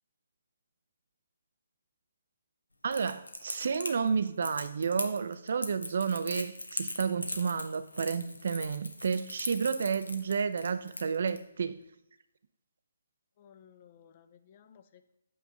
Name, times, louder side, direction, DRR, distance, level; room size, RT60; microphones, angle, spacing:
voice 1, 2.8-11.8, right 6 dB, 55° right, 0.4 m, -31 dB
Crackle, 2.9-11.4, left 2 dB, 75° left, 1.0 m, -39 dB
voice 2, 13.4-15.1, left 8 dB, 35° left, 0.6 m, -58 dB
8.6 x 3.4 x 5.1 m
figure-of-eight pair, 140°, 0 cm